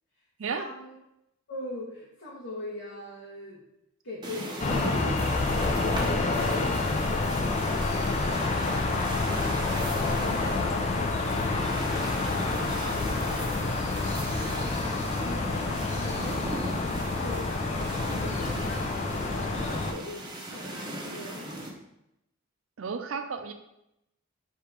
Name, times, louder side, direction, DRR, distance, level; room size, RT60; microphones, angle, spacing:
voice 1, 0.5-1.0 1.5-3.6 4.0-16.4 16.8-21.7, left 1 dB, 85° left, -9 dB, 1.1 m, -42 dB
sound 1, 4.2-21.7, right 1 dB, 20° right, 0.6 m, -38 dB
sound 2, 4.6-19.9, left 3 dB, 35° left, 0.4 m, -28 dB
voice 2, 22.8-23.5, right 5 dB, 85° right, 8 dB, 0.5 m, -33 dB
3.5 x 2.9 x 4.6 m, 0.84 s
head